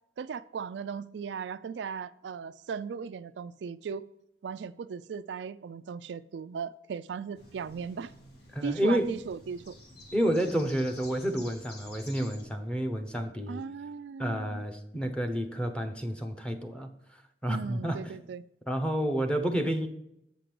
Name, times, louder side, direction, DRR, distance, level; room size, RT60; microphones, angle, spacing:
voice 1, 0.2-4.1 4.4-8.1 8.6-9.8 13.5-14.7 17.5-18.4, right 6 dB, 75° right, 0.3 m, -37 dB
sound 1, 7.3-12.4, left 1 dB, 65° left, 1.9 m, -50 dB
voice 2, 8.5-9.2 10.1-13.6 14.2-16.9 17.4-18.0 18.7-19.9, equal, 5° left, 0.9 m, -29 dB
8.3 x 5.2 x 6.0 m
head